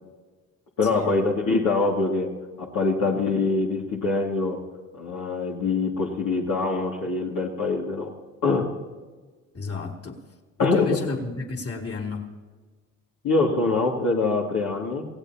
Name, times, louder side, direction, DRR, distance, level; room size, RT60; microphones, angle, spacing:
voice 1, 0.8-2.3 2.6-4.6 5.0-8.1 8.4-8.7 10.6-11.0 13.2-15.1, left 3 dB, 60° left, -3 dB, 2.4 m, -24 dB
voice 2, 9.5-10.2 10.6-12.3, left 4 dB, 35° left, 0 dB, 3.3 m, -31 dB
28.0 x 17.0 x 2.9 m, 1.4 s
hypercardioid pair, 55°, 38 cm